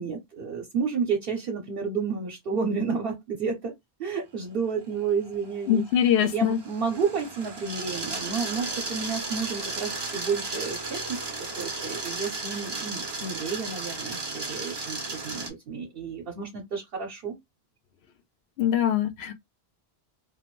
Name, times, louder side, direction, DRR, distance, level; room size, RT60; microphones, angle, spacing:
voice 1, 0.0-3.7 4.0-5.8 6.2-17.4, right 5 dB, 65° right, 0.9 m, -31 dB
sound 1, 4.9-15.5, right 3 dB, 30° right, 0.6 m, -35 dB
voice 2, 5.7-6.6 18.6-19.3, left 9 dB, 80° left, 0.9 m, -23 dB
2.5 x 2.3 x 3.0 m
omnidirectional pair, 1.1 m